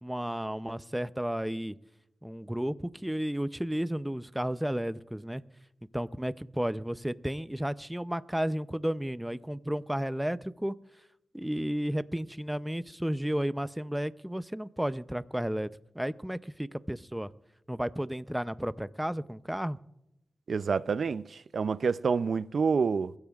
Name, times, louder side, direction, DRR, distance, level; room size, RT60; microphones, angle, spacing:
voice 1, 0.0-1.7 2.2-5.4 5.9-10.8 11.3-15.7 15.9-17.3 17.7-19.8, equal, 5° right, 0.6 m, -32 dB
voice 2, 20.5-23.1, right 5 dB, 75° right, 0.4 m, -28 dB
27.5 x 15.5 x 2.4 m
cardioid pair, 60°, 0 cm